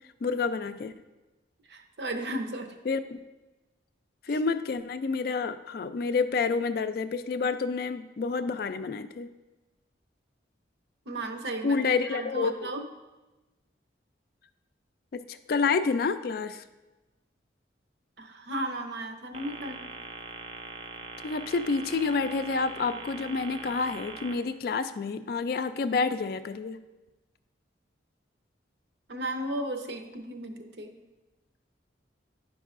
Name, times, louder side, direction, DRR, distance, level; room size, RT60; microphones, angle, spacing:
voice 1, 0.2-0.9 2.9-3.2 4.3-9.3 11.6-12.7 15.1-16.6 21.2-26.8, left 4 dB, 55° left, 11 dB, 0.3 m, -29 dB
voice 2, 1.7-2.7 4.3-4.4 11.1-11.8 12.1-12.9 18.2-19.9 29.1-30.9, right 1 dB, 65° right, 4 dB, 0.7 m, -35 dB
sound 1, 19.3-24.3, right 3 dB, 30° right, 0.5 m, -42 dB
11.0 x 5.3 x 2.4 m, 1.1 s
head